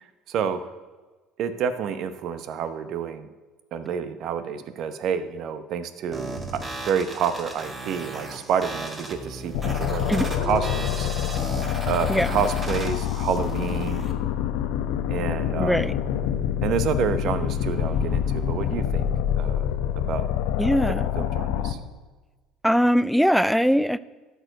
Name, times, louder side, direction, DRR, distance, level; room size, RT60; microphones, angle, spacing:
voice 1, 0.3-0.7 1.4-3.3 3.7-11.1 11.9-14.1 15.1-15.9 16.6-19.1 19.4-19.6 20.1-20.3 20.6-21.8, right 7 dB, 60° right, 11 dB, 0.9 m, -29 dB
sound 1, 6.1-14.1, right 2 dB, 25° right, 1.9 m, -36 dB
sound 2, 9.5-21.7, left 10 dB, 75° left, 0.8 m, -26 dB
voice 2, 15.6-15.9 20.6-21.1 22.6-24.0, equal, ahead, 16 dB, 0.4 m, -21 dB
sound 3, 17.3-20.1, left 3 dB, 25° left, 0.9 m, -33 dB
12.5 x 4.7 x 7.7 m, 1.3 s
hypercardioid pair, 75°, 0 cm